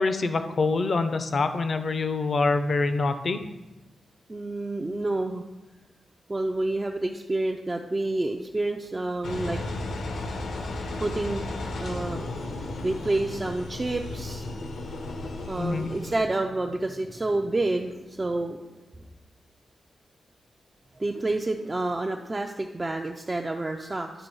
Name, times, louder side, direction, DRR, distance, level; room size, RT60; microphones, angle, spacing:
voice 1, 0.0-3.4 15.6-15.9, left 3 dB, 45° left, 9 dB, 0.5 m, -25 dB
voice 2, 4.3-5.4 6.3-9.6 11.0-11.4 11.8-12.3 12.8-14.5 15.5-18.7 21.0-24.3, right 2 dB, 20° right, 2 dB, 0.4 m, -29 dB
Engine, 9.2-16.2, left 2 dB, 90° left, 1.1 m, -34 dB
11.0 x 3.8 x 5.3 m, 1.1 s
wide cardioid pair, 160°, 0 cm